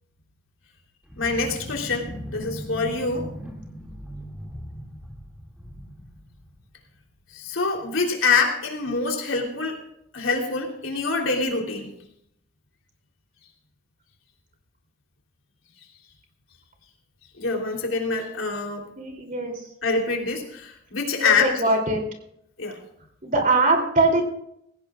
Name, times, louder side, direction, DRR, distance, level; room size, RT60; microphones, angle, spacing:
sound 1, 1.0-7.0, equal, 5° right, 2.3 m, -39 dB
voice 1, 1.2-3.3 7.3-9.8 10.1-11.9 17.4-18.9 19.8-21.5 22.6-22.8, left 4 dB, 80° left, 1 dB, 3.3 m, -25 dB
voice 2, 19.0-19.5 21.2-22.0 23.2-24.2, right 2 dB, 40° right, 3 dB, 3.1 m, -21 dB
18.5 x 17.0 x 2.4 m, 0.74 s
head